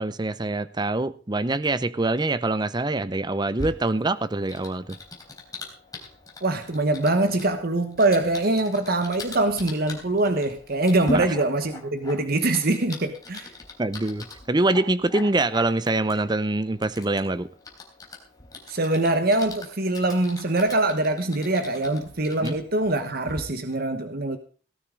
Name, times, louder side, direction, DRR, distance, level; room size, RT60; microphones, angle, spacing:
voice 1, 0.0-5.0 11.1-11.3 13.8-17.5 22.4-22.6, right 2 dB, 20° right, 0.7 m, -25 dB
Typing, 3.6-23.4, left 1 dB, 20° left, 3.7 m, -40 dB
voice 2, 6.4-13.5 18.7-24.4, right 2 dB, 50° right, 1.2 m, -23 dB
18.0 x 12.5 x 3.8 m
head